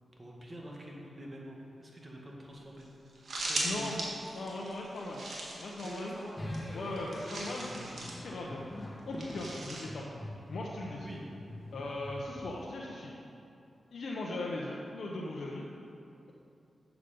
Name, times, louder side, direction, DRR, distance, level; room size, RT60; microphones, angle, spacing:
voice 1, 0.2-2.9 3.4-4.0 5.0-5.2 5.8-6.4 6.8-6.9 11.0-11.2, right 1 dB, 30° right, -2 dB, 1.8 m, -46 dB
sound 1, 2.5-2.6 2.8-2.9 3.1-6.3 6.5-8.2 9.2-9.9, right 2 dB, 70° right, 1.7 m, -39 dB
voice 2, 3.6-4.0 4.3-5.2 5.6-6.2 6.7-7.8 8.2-8.6 9.1-10.1 10.5-11.1 11.7-13.2 13.9-15.7, left 2 dB, 75° left, -3 dB, 0.8 m, -38 dB
sound 2, 6.4-12.7, left 1 dB, 25° left, 1.6 m, -44 dB
7.1 x 6.8 x 5.2 m, 2.7 s
cardioid pair, 50°, 0 cm